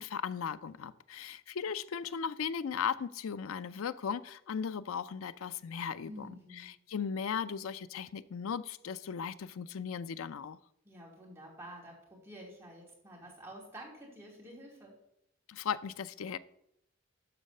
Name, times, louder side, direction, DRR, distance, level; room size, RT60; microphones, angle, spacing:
voice 1, 0.0-6.3 6.6-10.6 15.5-16.4, left 7 dB, 80° left, 14 dB, 0.4 m, -37 dB
voice 2, 6.0-6.7 10.8-14.9, right 1 dB, 10° right, -3 dB, 2.7 m, -49 dB
12.0 x 4.0 x 6.5 m, 0.78 s
head